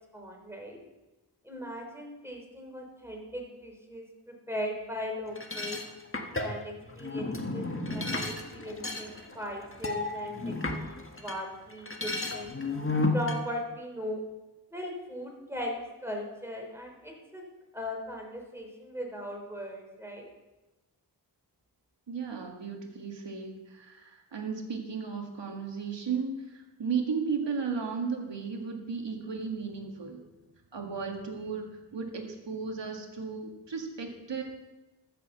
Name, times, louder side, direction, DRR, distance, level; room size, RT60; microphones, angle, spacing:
voice 1, 0.1-0.8 1.4-5.8 6.4-12.5 13.1-14.2 14.7-17.4 17.7-20.3, left 1 dB, 5° right, 1 dB, 4.0 m, -38 dB
sound 1, 5.3-11.4 11.7-13.4, left 2 dB, 30° left, 1.7 m, -33 dB
voice 2, 22.1-30.2 30.7-34.4, right 5 dB, 85° right, 2 dB, 2.1 m, -35 dB
14.0 x 6.9 x 6.9 m, 1.1 s
cardioid pair, 50°, 42 cm